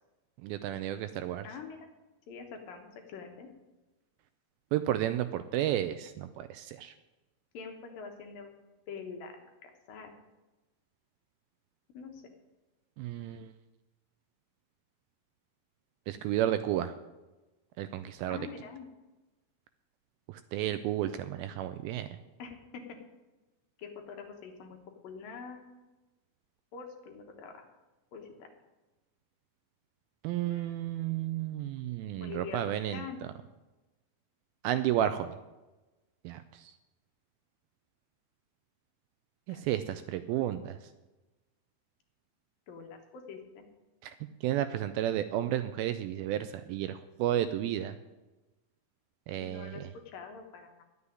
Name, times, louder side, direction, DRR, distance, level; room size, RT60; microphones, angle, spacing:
voice 1, 0.4-1.5 4.7-6.9 13.0-13.5 16.1-17.0 17.8-18.4 20.3-22.2 30.2-33.1 34.6-35.4 36.2-36.7 39.5-40.8 44.0-44.1 44.4-48.0 49.3-49.9, right 12 dB, 80° right, 11 dB, 2.2 m, -32 dB
voice 2, 1.4-1.9 2.3-3.5 7.5-8.5 8.9-10.2 11.9-12.2 18.3-18.9 22.4-23.0 23.8-24.8 25.0-25.9 26.7-27.6 28.1-28.5 30.5-30.8 32.2-32.6 32.9-33.2 39.5-39.7 42.7-43.7 49.4-50.8, left 6 dB, 65° left, 3 dB, 2.8 m, -45 dB
11.5 x 7.0 x 9.6 m, 1.1 s
omnidirectional pair, 4.6 m